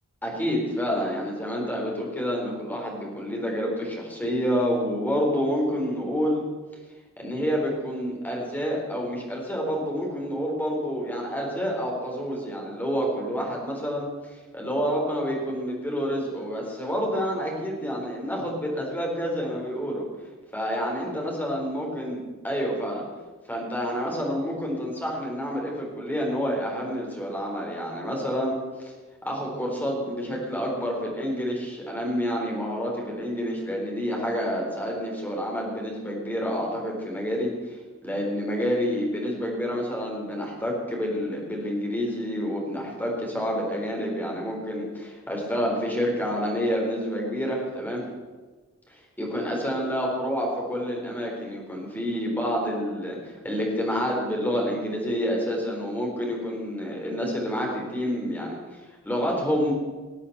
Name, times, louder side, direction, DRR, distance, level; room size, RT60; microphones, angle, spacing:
voice 1, 0.2-6.4 7.2-20.1 20.5-23.0 23.5-28.9 29.2-37.8 38.0-48.0 49.2-59.7, equal, 10° left, -1 dB, 4.2 m, -28 dB
20.5 x 8.5 x 8.1 m, 1.3 s
head